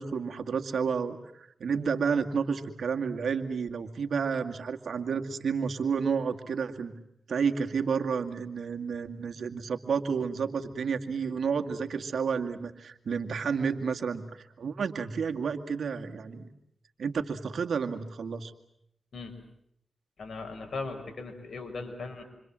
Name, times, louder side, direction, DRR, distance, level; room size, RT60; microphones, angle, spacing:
voice 1, 0.0-7.0 7.3-16.5 17.0-18.5, right 6 dB, 80° right, 6 dB, 2.2 m, -31 dB
voice 2, 20.2-22.2, left 3 dB, 65° left, 5 dB, 6.5 m, -38 dB
27.5 x 26.0 x 7.6 m, 0.73 s
cardioid pair, 55°, 0 cm